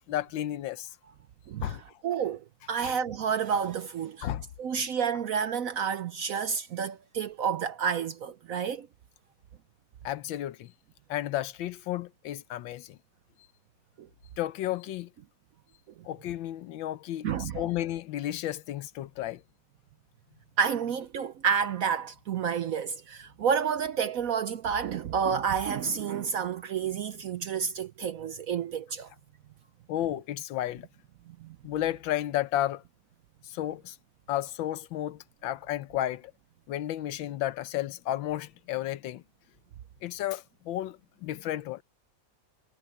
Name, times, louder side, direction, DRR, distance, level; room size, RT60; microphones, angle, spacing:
voice 1, 0.1-0.9 1.6-1.8 2.8-2.9 4.2-4.5 10.0-10.7 11.1-13.0 14.4-15.1 16.0-19.4 29.9-30.9 31.6-32.8 33.4-34.0 34.3-36.3 36.7-39.2 40.0-41.8, left 13 dB, 85° left, 1.5 m, -32 dB
voice 2, 1.5-4.3 4.6-8.9 14.0-14.1 17.2-17.6 20.6-29.1 31.4-31.6, right 7 dB, 65° right, 0.9 m, -30 dB
omnidirectional pair, 2.0 m